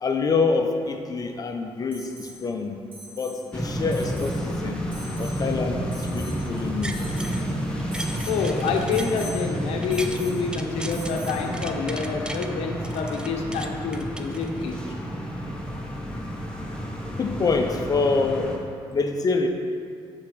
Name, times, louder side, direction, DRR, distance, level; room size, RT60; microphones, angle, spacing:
voice 1, 0.0-2.8 3.1-4.8 5.2-7.0 17.2-18.6 18.9-19.5, left 4 dB, 40° left, 4 dB, 0.6 m, -26 dB
Alarm, 1.9-2.4 2.9-3.4 3.9-4.4 4.9-5.4 5.9-6.4 6.9-7.4 7.9-8.4 8.9-9.4 9.9-10.4 10.9-11.4 13.1-13.2, equal, 60° right, 1.9 m, -42 dB
sound 1, 3.5-18.6, equal, 10° left, 1.1 m, -31 dB
sound 2, 6.6-7.4 7.8-10.2 10.5-12.5 12.8-14.8 15.3-15.4, right 1 dB, 10° right, 0.4 m, -39 dB
voice 2, 8.2-14.8, left 5 dB, 90° left, 3 dB, 0.8 m, -27 dB
6.9 x 4.3 x 6.1 m, 2.2 s
cardioid pair, 100°, 10 cm